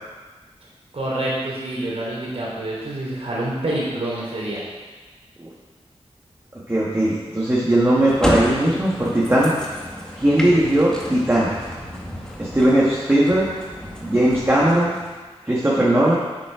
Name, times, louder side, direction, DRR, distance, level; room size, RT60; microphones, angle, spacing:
voice 1, 0.9-4.6, right 1 dB, 70° right, -5 dB, 3.1 m, -27 dB
voice 2, 6.7-9.5 10.2-11.5 12.4-13.5 14.0-15.0 15.5-16.1, right 1 dB, 20° right, -7 dB, 1.8 m, -18 dB
sound 1, 8.0-15.2, equal, 5° left, 1.8 m, -30 dB
8.6 x 7.5 x 5.0 m, 1.3 s
wide cardioid pair, 85°, 11 cm